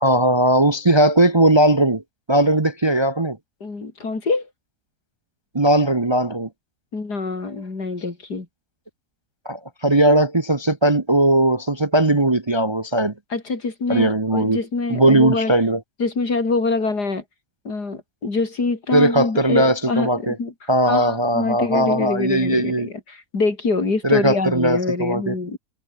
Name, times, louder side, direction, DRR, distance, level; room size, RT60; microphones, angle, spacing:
voice 1, 0.0-2.0 2.3-3.4 5.5-6.5 9.4-13.1 13.9-14.6 14.9-15.8 18.9-20.3 20.7-22.9 24.0-25.4, right 1 dB, 20° right, 0.8 m, -18 dB
voice 2, 3.6-4.5 6.9-8.5 13.3-15.5 16.0-17.2 17.6-25.6, left 3 dB, 75° left, 4.4 m, -25 dB
omnidirectional pair, 1.7 m